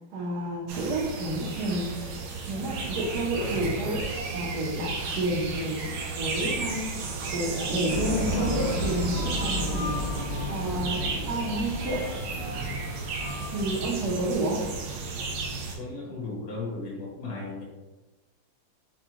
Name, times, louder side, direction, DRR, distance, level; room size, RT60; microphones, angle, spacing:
voice 1, 0.1-1.9 2.5-4.0 4.3-5.9 6.1-7.0 7.3-10.2 10.5-12.0 13.5-14.6, right 1 dB, 60° right, -2 dB, 1.1 m, -30 dB
sound 1, 0.7-15.8, right 4 dB, 75° right, 1.5 m, -34 dB
sound 2, 7.9-14.7, left 1 dB, 70° left, 1.9 m, -32 dB
voice 2, 15.8-17.6, left 3 dB, 50° left, -4 dB, 1.5 m, -35 dB
6.0 x 2.2 x 2.9 m, 1.2 s
omnidirectional pair, 2.4 m